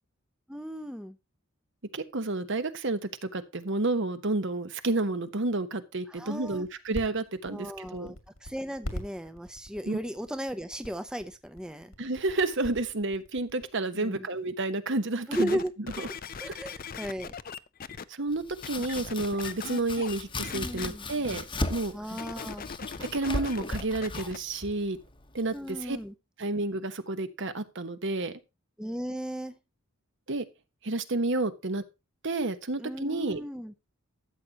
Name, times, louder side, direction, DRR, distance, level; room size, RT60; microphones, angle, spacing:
voice 1, 0.5-1.2 6.1-6.6 7.5-11.9 13.9-14.2 15.3-15.7 16.4-17.3 20.5-21.1 21.9-22.7 25.5-26.1 28.8-29.6 32.8-33.7, equal, 5° right, 9 dB, 0.6 m, -36 dB
voice 2, 1.9-8.1 9.9-10.0 12.0-15.6 16.0-16.1 16.5-16.6 18.1-21.9 23.0-25.0 25.3-26.0 26.4-28.3 30.3-30.4 30.8-31.8 32.2-33.4, right 2 dB, 60° right, 10 dB, 1.2 m, -30 dB
sound 1, 6.2-13.6, left 1 dB, 80° left, 2.4 m, -40 dB
sound 2, 15.3-18.0 18.6-20.2 20.4-20.9 22.1-24.4 25.0-25.1, left 6 dB, 40° left, 0.5 m, -40 dB
Domestic sounds home sounds, 18.3-26.0, left 2 dB, 25° left, 1.0 m, -37 dB
13.0 x 7.9 x 2.9 m, 0.25 s
head